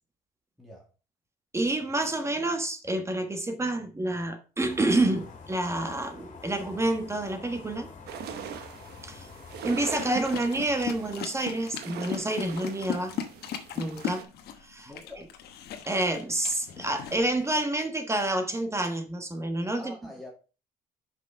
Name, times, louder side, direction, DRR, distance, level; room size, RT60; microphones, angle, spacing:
voice 1, 1.5-7.9 9.0-9.3 9.6-13.1 13.7-14.3 14.6-14.9 15.8-19.9, right 1 dB, 15° right, 1.2 m, -28 dB
sound 1, 4.6-11.2, left 5 dB, 45° left, 2.4 m, -47 dB
sound 2, 8.1-14.2, right 9 dB, 70° right, 1.0 m, -41 dB
sound 3, 10.0-17.6, left 8 dB, 70° left, 1.2 m, -38 dB
voice 2, 14.8-15.3 19.7-20.3, left 1 dB, ahead, 2.3 m, -45 dB
5.9 x 5.7 x 4.6 m
cardioid pair, 110°, 17 cm